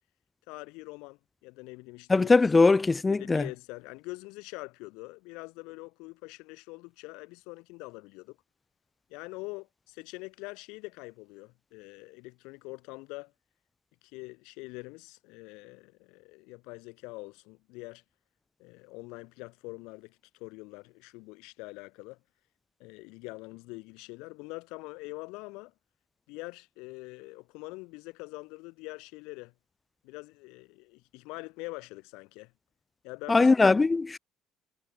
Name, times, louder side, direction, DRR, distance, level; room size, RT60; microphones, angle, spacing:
voice 1, 0.5-2.3 3.1-8.4 9.1-13.3 14.0-18.0 18.6-22.2 22.8-25.7 26.3-29.5 30.0-32.5 33.0-33.5, left 25 dB, 75° left, 4.1 m, -44 dB
voice 2, 2.1-3.4 33.3-34.2, left 3 dB, 25° left, 0.7 m, -21 dB
hypercardioid pair, 65°, 0 cm